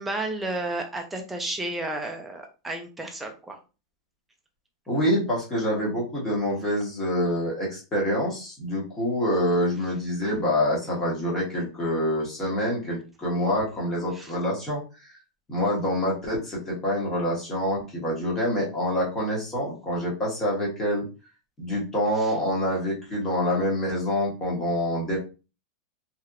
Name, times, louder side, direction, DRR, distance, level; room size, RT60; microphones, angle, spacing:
voice 1, 0.0-3.6 14.1-14.3 22.2-22.3, right 2 dB, 5° right, 3 dB, 0.4 m, -32 dB
voice 2, 4.9-14.8 15.5-21.0 21.6-25.2, equal, 10° left, -4 dB, 1.0 m, -26 dB
3.2 x 2.8 x 2.4 m, 0.32 s
supercardioid pair, 180°, 3 cm